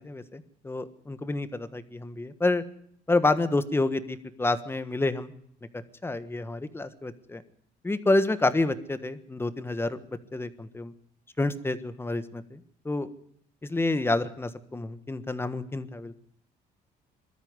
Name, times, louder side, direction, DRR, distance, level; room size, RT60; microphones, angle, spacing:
voice 1, 0.0-2.6 3.1-5.3 6.0-7.4 7.8-10.9 11.4-12.6 12.8-13.1 13.6-16.1, left 2 dB, 15° left, 12 dB, 1.4 m, -28 dB
21.5 x 13.0 x 9.7 m, 0.67 s
cardioid pair, 110°, 17 cm